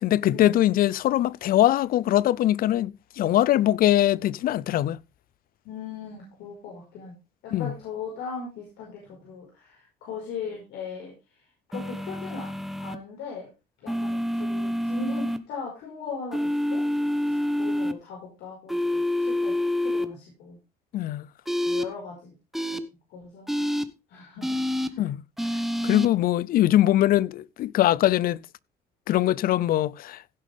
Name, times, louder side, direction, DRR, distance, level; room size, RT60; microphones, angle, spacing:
voice 1, 0.0-5.0 7.5-7.7 20.9-21.3 25.0-25.2 25.5-28.4 29.1-30.2, left 13 dB, 60° left, 0.5 m, -22 dB
voice 2, 5.6-7.1 7.4-11.1 11.7-12.5 12.8-13.5 13.8-16.8 17.2-20.6 21.6-22.3 23.1-23.6 24.1-24.6 24.9-25.1, left 5 dB, 85° left, 5.2 m, -39 dB
sound 1, 11.7-13.0 13.9-15.4 16.3-17.9 18.7-20.1 21.5-21.8 22.5-22.8 23.5-23.8 24.4-24.9 25.4-26.1, left 1 dB, ahead, 1.1 m, -27 dB
16.5 x 7.6 x 3.5 m
cardioid pair, 110°, 17 cm